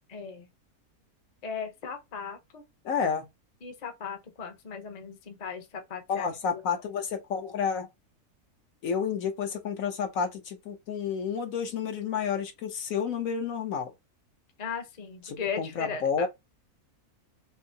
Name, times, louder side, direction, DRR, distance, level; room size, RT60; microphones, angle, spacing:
voice 1, 0.1-0.5 1.4-2.6 3.6-6.6 14.6-16.3, left 6 dB, 35° left, 0.7 m, -37 dB
voice 2, 2.8-3.3 6.1-7.9 8.8-13.9 15.2-16.3, left 6 dB, 65° left, 1.1 m, -30 dB
5.5 x 2.0 x 2.7 m
omnidirectional pair, 1.6 m